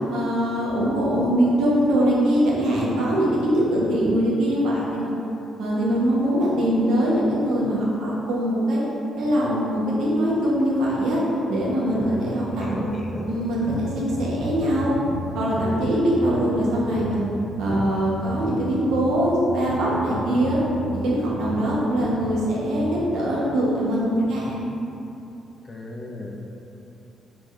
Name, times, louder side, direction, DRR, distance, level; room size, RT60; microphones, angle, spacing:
voice 1, 0.1-5.2 5.6-8.8 9.2-11.2 11.5-12.9 13.3-14.9 15.3-17.3 17.6-20.6 21.0-24.6, equal, 85° right, -6 dB, 0.8 m, -22 dB
voice 2, 11.9-13.3 25.7-26.3, left 1 dB, 20° left, -1 dB, 0.5 m, -35 dB
sound 1, 11.9-23.0, equal, 55° right, 0.5 m, -34 dB
3.5 x 2.3 x 3.1 m, 2.9 s
cardioid pair, 90°, 0 cm